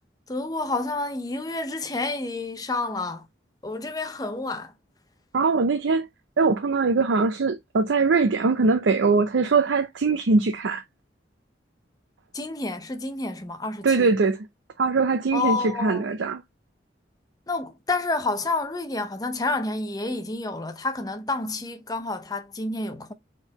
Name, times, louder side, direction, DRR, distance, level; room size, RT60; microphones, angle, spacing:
voice 1, 0.3-3.3 3.6-4.7 12.3-14.1 15.3-16.0 17.5-23.1, left 3 dB, 20° left, 0.6 m, -29 dB
voice 2, 5.3-6.1 6.4-10.8 13.8-14.5 14.8-16.4, right 4 dB, 85° right, 0.5 m, -22 dB
4.4 x 3.7 x 2.9 m
head